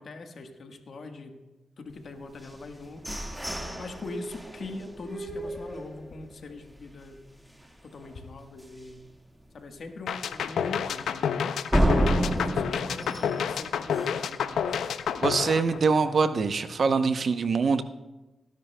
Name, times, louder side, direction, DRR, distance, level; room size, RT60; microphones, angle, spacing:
voice 1, 0.0-1.4 1.8-3.2 3.8-7.2 7.8-9.0 9.5-11.5 12.1-14.8, left 3 dB, 65° left, 5 dB, 1.3 m, -42 dB
sound 1, 2.4-6.3 6.8-6.9 7.2-7.6 8.0-8.1 8.6-8.7 11.7-14.4, right 1 dB, 10° right, 1.7 m, -29 dB
sound 2, 10.1-16.3, left 7 dB, 90° left, 0.4 m, -29 dB
voice 2, 15.2-17.8, right 4 dB, 60° right, 10 dB, 0.7 m, -24 dB
19.0 x 10.5 x 2.2 m, 1.1 s
cardioid pair, 50°, 0 cm